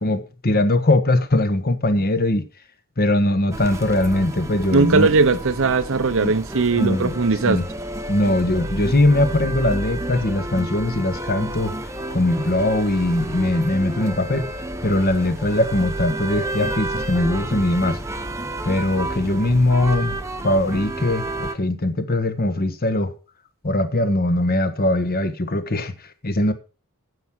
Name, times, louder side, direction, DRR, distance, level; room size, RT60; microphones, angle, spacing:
voice 1, 0.0-2.4 3.0-5.1 6.2-6.3 6.8-7.1 7.4-7.6 8.1-11.8 12.1-14.5 14.8-18.0 18.6-20.2 20.4-23.1 23.6-25.9 26.2-26.5, left 1 dB, 45° left, 1.3 m, -21 dB
sound 1, 3.5-21.6, right 1 dB, 15° right, 1.0 m, -30 dB
voice 2, 4.7-7.6, right 4 dB, 60° right, 0.8 m, -19 dB
9.5 x 7.7 x 6.2 m
head